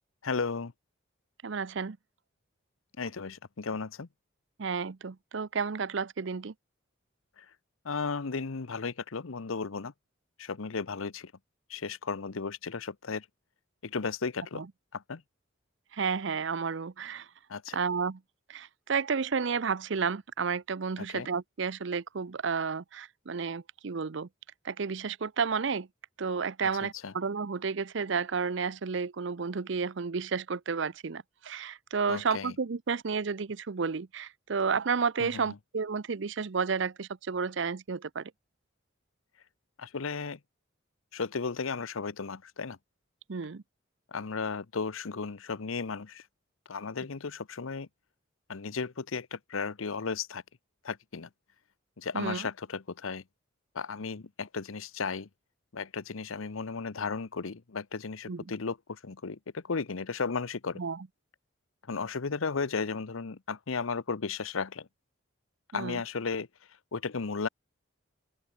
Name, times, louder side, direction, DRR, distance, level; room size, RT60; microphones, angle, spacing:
voice 1, 0.2-0.7 3.0-4.1 7.4-7.5 7.8-9.9 10.4-11.3 11.7-13.3 13.8-14.6 14.9-15.2 17.5-17.8 21.0-21.3 26.6-27.1 32.1-32.5 35.2-35.6 39.8-40.4 41.1-42.8 44.1-46.2 46.7-47.9 48.5-50.4 50.8-51.3 52.0-53.2 53.7-55.3 55.7-60.8 61.9-64.9 65.7-66.5 66.9-67.5, left 4 dB, 85° left, 0.8 m, -35 dB
voice 2, 1.4-2.0 4.6-6.5 14.5-14.7 15.9-17.3 17.7-18.2 18.5-24.3 24.6-25.9 26.2-38.3 43.3-43.6 52.1-52.5 58.3-58.4 60.8-61.1 65.7-66.0, right 5 dB, 65° right, 0.6 m, -31 dB
open air
head